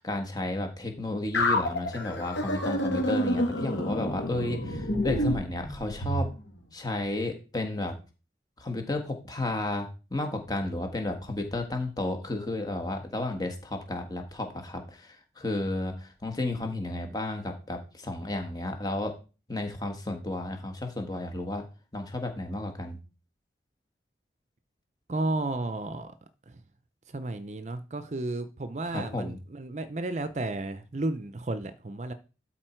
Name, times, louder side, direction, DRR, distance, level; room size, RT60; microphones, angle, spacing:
voice 1, 0.0-6.3 6.7-7.9 8.6-19.1 19.5-21.6 21.9-23.0 28.9-29.4, left 2 dB, 20° left, 1.5 m, -32 dB
sound 1, 1.3-6.3, left 1 dB, 85° left, 2.1 m, -28 dB
voice 2, 25.1-26.1 26.5-26.6 27.1-32.1, right 2 dB, 40° right, 0.6 m, -33 dB
12.0 x 4.3 x 4.5 m
head